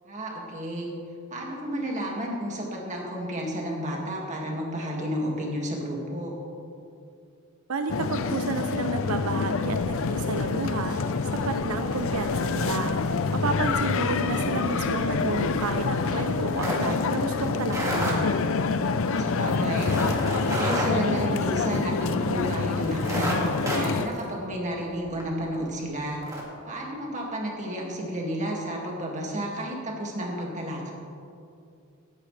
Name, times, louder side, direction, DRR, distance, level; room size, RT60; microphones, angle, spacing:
voice 1, 0.1-0.9 1.3-6.4 18.9-19.9 20.3-26.2 26.7-30.9, equal, 35° right, -2 dB, 2.2 m, -32 dB
voice 2, 7.7-11.0 11.2-12.9 13.3-18.2, right 3 dB, 90° right, 7 dB, 0.6 m, -31 dB
sound 1, 7.9-24.1, left 4 dB, 70° left, 0.5 m, -27 dB
sound 2, 9.6-10.3 10.6-10.9 11.3-22.0 22.3-22.4 22.8-25.3 25.7-25.8 26.1-26.4, right 1 dB, 15° right, 2.2 m, -34 dB
sound 3, 10.0-16.9, equal, 55° right, 1.9 m, -49 dB
17.0 x 9.9 x 3.4 m, 2.5 s
head